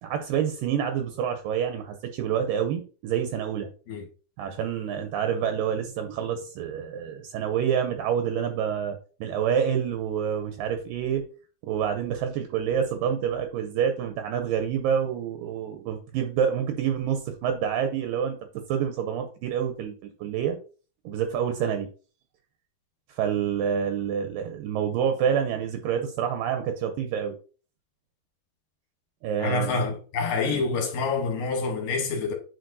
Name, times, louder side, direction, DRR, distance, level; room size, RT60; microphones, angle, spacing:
voice 1, 0.0-3.7 4.4-11.2 11.6-18.4 18.7-20.6 21.1-21.9 23.1-27.3 29.2-29.8 30.5-30.6, right 8 dB, 80° right, 2.0 m, -27 dB
voice 2, 29.4-32.3, left 4 dB, 70° left, 2.3 m, -27 dB
9.1 x 4.2 x 2.6 m
omnidirectional pair, 4.7 m